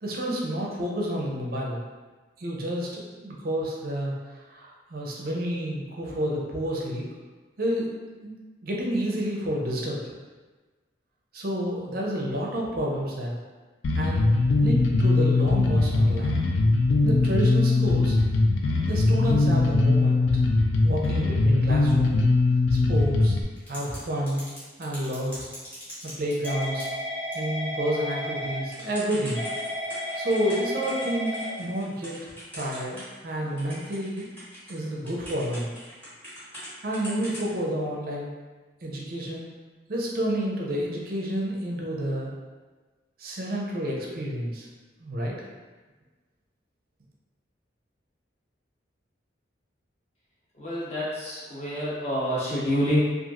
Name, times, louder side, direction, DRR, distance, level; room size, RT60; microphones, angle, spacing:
voice 1, 0.0-1.8 2.4-7.1 7.6-7.9 8.2-8.4 8.6-10.0 11.3-13.4 13.9-14.3 14.6-16.5 17.0-18.2 18.9-20.4 20.8-22.2 22.7-23.4 23.7-24.4 24.8-25.4 26.0-26.9 27.3-29.4 30.2-34.3 34.7-35.7 36.8-38.3 38.8-39.5 39.9-42.3 43.2-44.7 45.0-45.5, right 1 dB, 50° right, -2 dB, 0.5 m, -29 dB
Bass guitar, 13.8-23.4, left 3 dB, 75° left, 0.3 m, -21 dB
Typing / Telephone, 23.6-24.0 24.3-33.3 33.6-36.7 36.9-37.5, equal, 10° left, 0.9 m, -34 dB
voice 2, 50.6-53.0, equal, 35° left, -8 dB, 0.8 m, -27 dB
2.9 x 2.4 x 2.4 m, 1.3 s
head